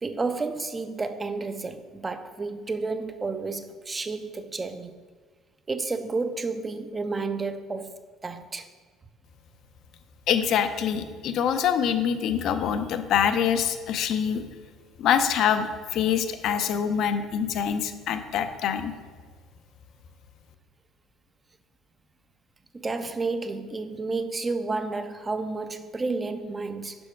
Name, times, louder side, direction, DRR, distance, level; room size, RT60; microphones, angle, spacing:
voice 1, 0.0-4.9 5.7-8.7 22.7-27.0, right 3 dB, 20° right, 0.4 m, -31 dB
voice 2, 10.3-14.4 15.0-18.9, left 8 dB, 60° left, 0.5 m, -25 dB
5.7 x 5.3 x 4.4 m
cardioid pair, 115°, 0 cm